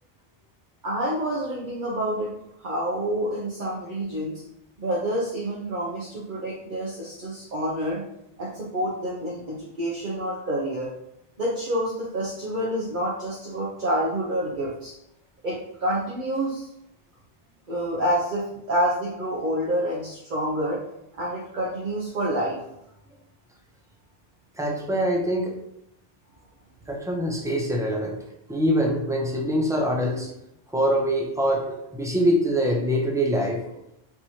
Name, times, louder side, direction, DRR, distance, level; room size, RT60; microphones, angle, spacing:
voice 1, 0.8-2.3 2.6-4.4 4.8-8.0 8.4-10.9 11.4-14.9 15.4-16.6 17.7-20.8 21.1-22.6, right 1 dB, 55° right, -6 dB, 0.9 m, -28 dB
voice 2, 24.6-25.6 26.9-28.2 28.5-30.3 30.7-33.6, equal, 5° right, 0 dB, 0.4 m, -24 dB
4.5 x 3.0 x 2.8 m, 0.79 s
omnidirectional pair, 1.0 m